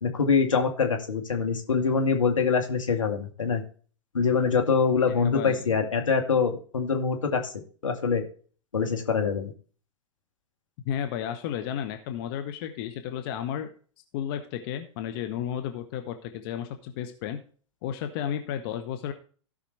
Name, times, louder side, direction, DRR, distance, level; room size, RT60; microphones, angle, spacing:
voice 1, 0.0-3.6 4.1-7.5 7.8-8.2 8.7-9.5, left 5 dB, 80° left, 3 dB, 2.2 m, -24 dB
voice 2, 5.1-5.6 10.8-13.7 14.1-17.4 17.8-19.1, left 9 dB, 45° left, 7 dB, 1.3 m, -33 dB
16.0 x 5.8 x 3.3 m, 0.41 s
figure-of-eight pair, 105°, 16 cm